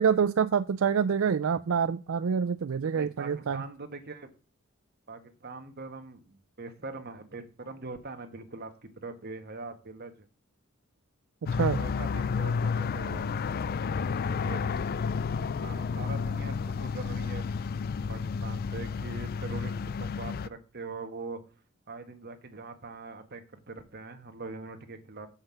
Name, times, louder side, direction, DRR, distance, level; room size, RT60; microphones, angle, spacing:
voice 1, 0.0-3.6 11.4-11.8, right 6 dB, 70° right, 11 dB, 0.4 m, -26 dB
voice 2, 2.9-4.3 5.1-10.3 11.5-13.3 14.2-14.6 15.4-17.4 17.7-21.4 21.9-25.3, right 3 dB, 50° right, 7 dB, 1.4 m, -42 dB
sound 1, 11.5-20.5, left 5 dB, 45° left, 0.4 m, -31 dB
7.5 x 5.6 x 6.8 m, 0.36 s
head